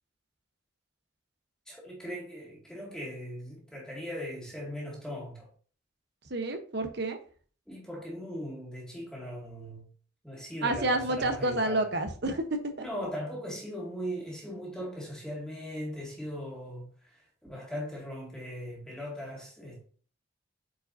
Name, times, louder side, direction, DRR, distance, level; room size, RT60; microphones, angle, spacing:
voice 1, 1.7-5.5 7.7-9.8 10.2-11.8 12.8-19.8, equal, 5° left, 2.2 m, -39 dB
voice 2, 6.3-7.2 10.6-12.8, right 2 dB, 55° right, 1.0 m, -29 dB
8.5 x 5.1 x 2.7 m
head